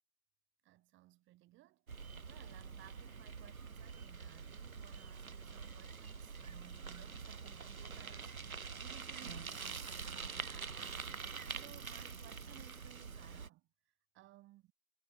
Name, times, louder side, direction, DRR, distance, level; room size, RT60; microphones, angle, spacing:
voice 1, 0.6-8.3 8.8-13.7 14.1-14.7, right 17 dB, 25° right, 6.1 m, -60 dB
Bicycle, 1.9-13.5, right 5 dB, 75° right, 6.8 m, -46 dB
figure-of-eight pair, 120°, 42 cm